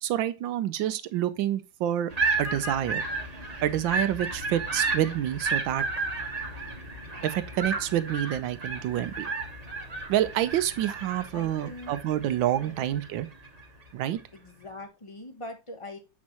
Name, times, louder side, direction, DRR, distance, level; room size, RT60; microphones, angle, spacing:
voice 1, 0.0-2.1 2.4-3.0 3.6-5.8 7.2-9.3 10.1-13.3 13.9-14.2, right 12 dB, 75° right, 1.3 m, -28 dB
sound 1, 2.1-13.6, right 3 dB, 25° right, 1.0 m, -33 dB
voice 2, 11.3-11.9 12.6-12.7 14.3-16.0, left 2 dB, 25° left, 0.7 m, -42 dB
7.2 x 6.2 x 2.9 m
omnidirectional pair, 2.2 m